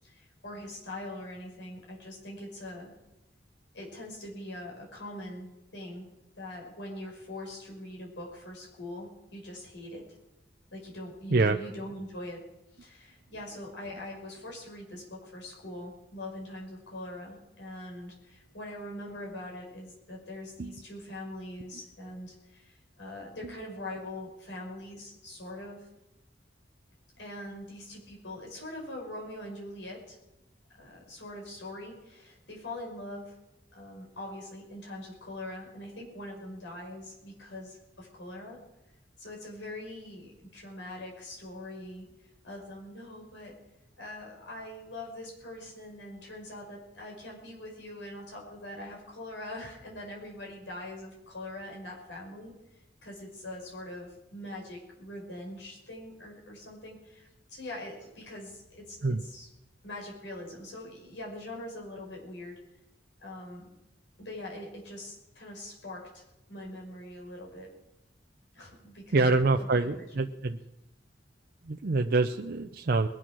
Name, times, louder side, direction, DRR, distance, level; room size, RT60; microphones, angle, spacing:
voice 1, 0.0-2.9 3.7-6.1 6.4-10.2 10.7-12.5 12.7-25.9 27.2-30.2 30.8-33.4 33.7-38.6 39.2-42.1 42.4-43.6 44.0-52.5 53.0-59.5 59.8-62.6 63.2-63.7 64.2-66.2 66.5-67.7 68.5-69.4 69.8-70.1, left 1 dB, 85° left, -1 dB, 5.7 m, -42 dB
voice 2, 69.1-70.6 71.6-73.1, right 3 dB, 55° right, 6 dB, 0.6 m, -26 dB
21.0 x 8.8 x 6.1 m, 0.92 s
head